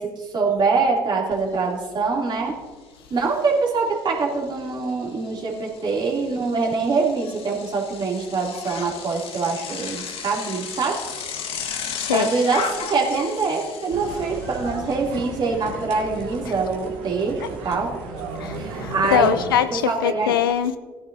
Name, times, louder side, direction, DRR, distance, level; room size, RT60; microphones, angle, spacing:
voice 1, 0.0-2.6 3.1-11.0 12.1-17.4 17.6-17.9 18.6-19.3 19.7-20.4, right 4 dB, 40° right, 2.9 m, -24 dB
Bicycle, 1.3-1.4 1.8-15.6, left 6 dB, 55° left, 1.4 m, -36 dB
voice 2, 11.6-12.3 17.4-17.5 18.4-20.8, left 9 dB, 85° left, 0.5 m, -23 dB
sound 1, 13.9-19.6, right 3 dB, 70° right, 2.1 m, -34 dB
17.0 x 10.5 x 2.7 m
hypercardioid pair, 55°, 11 cm